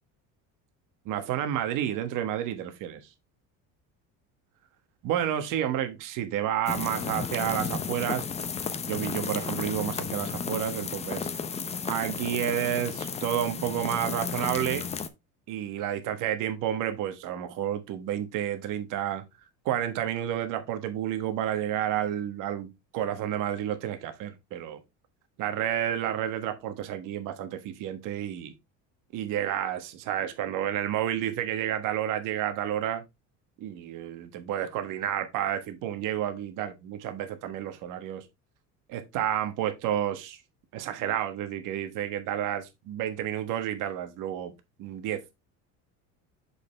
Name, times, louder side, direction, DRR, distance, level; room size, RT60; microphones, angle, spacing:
voice 1, 1.0-3.0 5.0-8.3 8.9-11.3 11.8-14.9 15.5-19.2 19.6-24.8 25.4-28.5 29.1-33.0 33.6-38.2 38.9-40.4 40.7-44.5 44.8-45.2, right 11 dB, 60° right, 1.2 m, -30 dB
sound 1, 6.7-15.1, left 6 dB, 20° left, 0.6 m, -33 dB
6.5 x 5.5 x 3.2 m
cardioid pair, 140°, 35 cm